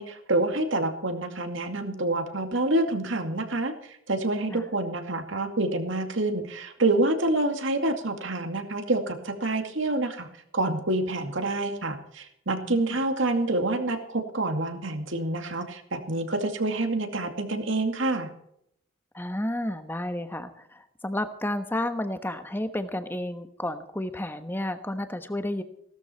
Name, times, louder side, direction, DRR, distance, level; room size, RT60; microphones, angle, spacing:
voice 1, 0.0-3.7 4.1-10.3 10.5-18.3, right 2 dB, 65° right, 6 dB, 2.3 m, -27 dB
voice 2, 12.7-13.0 19.1-25.6, left 1 dB, 10° left, 9 dB, 1.1 m, -31 dB
17.0 x 13.0 x 4.5 m, 0.72 s
head